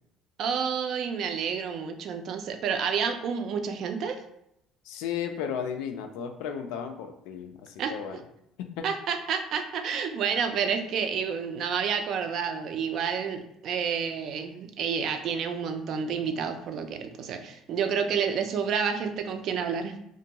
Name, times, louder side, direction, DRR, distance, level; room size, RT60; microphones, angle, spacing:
voice 1, 0.4-4.2 7.8-7.9 8.8-19.9, right 6 dB, 55° right, 6 dB, 0.3 m, -29 dB
voice 2, 4.8-8.2 8.6-8.9, left 8 dB, 90° left, 6 dB, 0.3 m, -34 dB
2.5 x 2.2 x 2.8 m, 0.78 s
cardioid pair, 135°, 0 cm